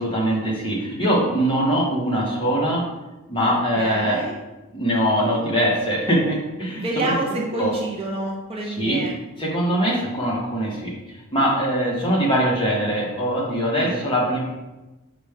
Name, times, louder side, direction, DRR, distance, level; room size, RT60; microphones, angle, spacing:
voice 1, 0.0-2.8 3.3-4.2 4.7-7.7 8.8-9.0 9.4-14.4, equal, 20° left, -4 dB, 1.0 m, -22 dB
voice 2, 3.4-4.4 6.8-9.1 13.7-14.1, right 2 dB, 25° right, -1 dB, 0.4 m, -28 dB
5.0 x 2.2 x 4.8 m, 1.1 s
head